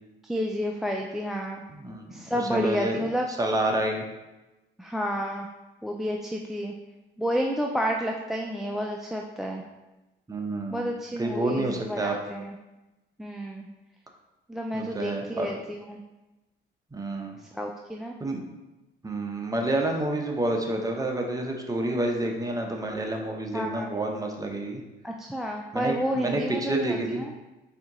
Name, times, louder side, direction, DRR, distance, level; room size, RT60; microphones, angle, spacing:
voice 1, 0.2-1.6 2.1-3.3 4.8-5.5 5.8-6.7 7.2-9.6 10.7-12.6 13.2-13.7 14.5-16.0 17.5-18.2 23.5-23.9 25.0-27.3, equal, ahead, 1 dB, 0.3 m, -30 dB
voice 2, 1.7-2.0 2.3-3.1 3.4-4.1 10.3-10.9 11.2-12.1 14.7-15.5 16.9-17.4 18.2-18.5 19.0-24.8 25.7-27.2, right 1 dB, 20° right, 2 dB, 0.7 m, -29 dB
4.3 x 2.8 x 3.8 m, 1.0 s
cardioid pair, 90°, 20 cm